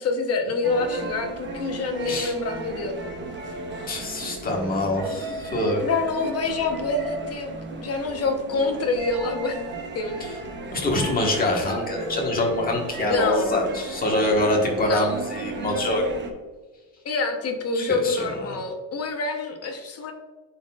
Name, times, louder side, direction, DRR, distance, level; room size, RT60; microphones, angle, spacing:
voice 1, 0.0-3.0 5.8-9.6 9.9-10.2 13.1-13.5 14.8-15.1 17.0-20.1, left 3 dB, 35° left, 4 dB, 1.0 m, -26 dB
sound 1, 0.6-16.3, right 3 dB, 30° right, 0.9 m, -35 dB
voice 2, 2.0-2.3 3.9-5.8 10.7-16.0 17.7-18.6, left 1 dB, 20° left, -1 dB, 1.5 m, -25 dB
10.0 x 4.3 x 2.4 m, 1.3 s
cardioid pair, 155°, 40 cm